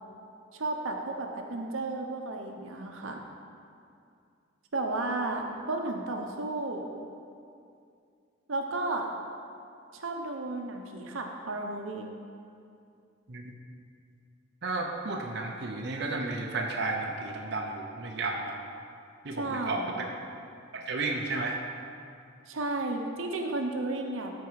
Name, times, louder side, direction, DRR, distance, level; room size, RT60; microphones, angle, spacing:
voice 1, 0.5-3.2 4.7-6.9 8.5-9.1 9.9-12.1 19.3-20.1 22.5-24.3, right 2 dB, 85° right, 3 dB, 0.9 m, -33 dB
voice 2, 14.6-18.6 19.2-20.0 20.7-21.6, right 3 dB, 60° right, 1 dB, 0.7 m, -33 dB
13.0 x 4.6 x 4.8 m, 2.4 s
head